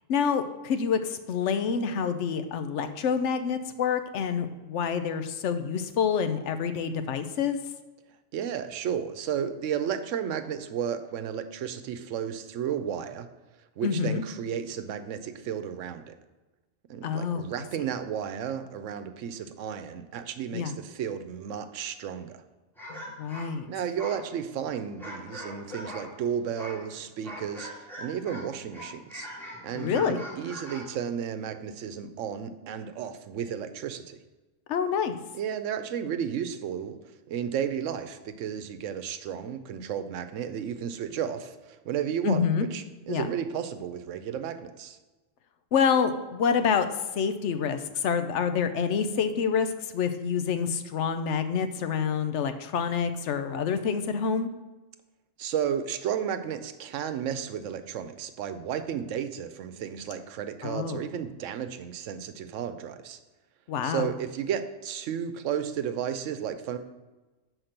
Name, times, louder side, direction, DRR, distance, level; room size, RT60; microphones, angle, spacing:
voice 1, 0.1-7.6 13.8-14.2 17.0-17.4 20.5-20.8 22.9-23.7 29.7-30.2 34.7-35.2 42.2-42.7 43.1-43.3 45.7-46.9 47.1-54.5 60.6-61.0 63.7-64.1, left 6 dB, 75° left, 9 dB, 0.9 m, -27 dB
voice 2, 8.3-13.3 13.8-16.1 16.9-22.4 23.7-29.3 29.6-34.2 35.3-37.0 37.3-45.0 55.4-63.2 63.8-66.8, right 8 dB, 85° right, 10 dB, 1.0 m, -33 dB
sound 1, 22.8-26.1 26.6-28.5 28.7-30.9, equal, ahead, 1.7 m, -42 dB
5.9 x 4.6 x 6.4 m, 1.2 s
omnidirectional pair, 1.3 m